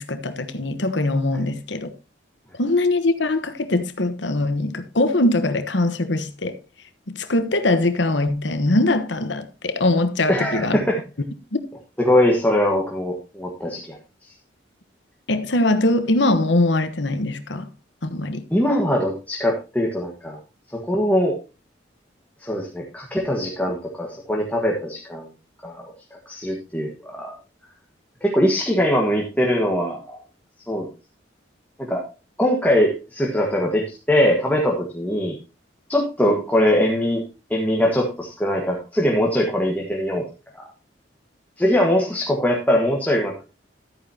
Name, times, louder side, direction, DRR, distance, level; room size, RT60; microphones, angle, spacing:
voice 1, 0.0-1.9 2.6-6.6 7.1-10.8 11.5-11.6 15.3-17.7 18.0-18.4, left 2 dB, 75° left, 1.2 m, -22 dB
voice 2, 10.3-11.0 12.1-14.0 18.5-20.4 20.9-21.3 22.4-25.3 25.6-25.9 26.3-27.3 28.2-30.2 30.7-30.9 31.8-32.0 32.4-35.4 35.9-37.2 37.5-40.2 40.5-40.7 41.6-43.4, left 1 dB, 10° left, 1.6 m, -21 dB
13.0 x 9.1 x 2.9 m
head